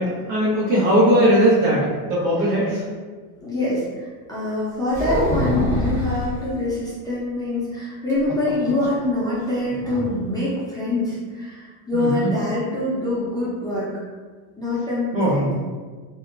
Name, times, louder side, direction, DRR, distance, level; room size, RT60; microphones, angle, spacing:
voice 1, 0.0-2.8 11.9-12.3 15.1-15.5, equal, 65° right, -6 dB, 1.2 m, -19 dB
voice 2, 3.4-13.9 14.6-15.5, left 1 dB, 10° left, -10 dB, 0.6 m, -25 dB
sound 1, 4.9-6.4 8.1-9.1 9.3-9.4 9.8-10.1, left 1 dB, 15° right, 0.9 m, -24 dB
2.7 x 2.1 x 2.5 m, 1.5 s
supercardioid pair, 120°, 45 cm